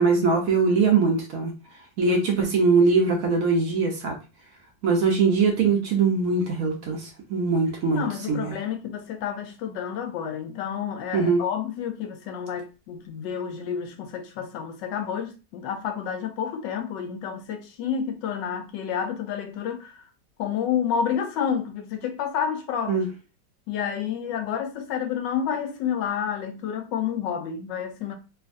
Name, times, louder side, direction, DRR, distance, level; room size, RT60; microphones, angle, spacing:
voice 1, 0.0-1.6 2.0-4.2 4.8-8.5 11.1-11.4 22.9-23.1, right 4 dB, 60° right, 1.0 m, -22 dB
voice 2, 7.9-20.0 20.4-23.0 23.7-28.1, left 8 dB, 85° left, 1.3 m, -29 dB
3.4 x 2.4 x 2.5 m
omnidirectional pair, 1.9 m